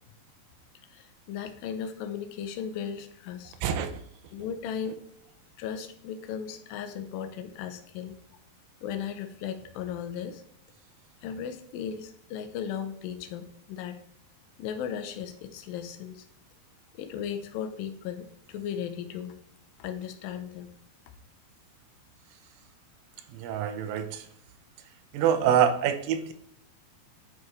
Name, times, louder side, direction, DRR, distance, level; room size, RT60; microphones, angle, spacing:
voice 1, 0.9-3.6 4.3-5.0 5.6-8.2 8.8-10.4 11.2-14.0 14.6-16.3 16.9-19.3 19.8-20.7, left 8 dB, 80° left, 7 dB, 2.2 m, -36 dB
voice 2, 3.6-3.9 23.3-24.2 25.1-26.3, right 8 dB, 80° right, 8 dB, 2.1 m, -25 dB
10.5 x 4.8 x 3.2 m, 0.69 s
omnidirectional pair, 4.7 m